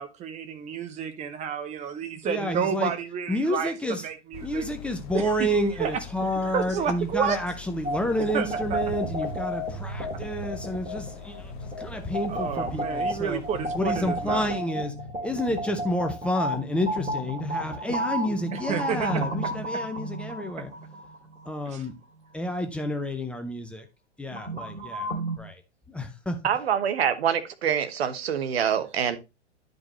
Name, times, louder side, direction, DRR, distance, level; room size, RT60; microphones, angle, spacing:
voice 1, 0.0-3.7 4.0-4.6 5.1-5.3 5.8-5.9 6.5-7.4 8.3-8.5 8.7-8.8 12.3-14.5 18.7-19.2 21.7-21.8, right 7 dB, 20° right, 1.1 m, -30 dB
voice 2, 2.2-2.9 3.3-4.1 4.4-13.4 13.7-14.9 15.2-20.7 21.4-21.9 22.3-23.9 24.2-25.1 25.4-25.6 25.9-26.4, equal, 5° left, 0.5 m, -29 dB
sound 1, 4.3-14.6, left 9 dB, 40° left, 0.7 m, -44 dB
sound 2, 7.8-21.6 24.3-25.4, right 1 dB, 85° right, 2.5 m, -33 dB
voice 3, 26.4-29.2, right 8 dB, 55° right, 1.1 m, -25 dB
11.0 x 5.2 x 3.1 m
figure-of-eight pair, 105°, 37 cm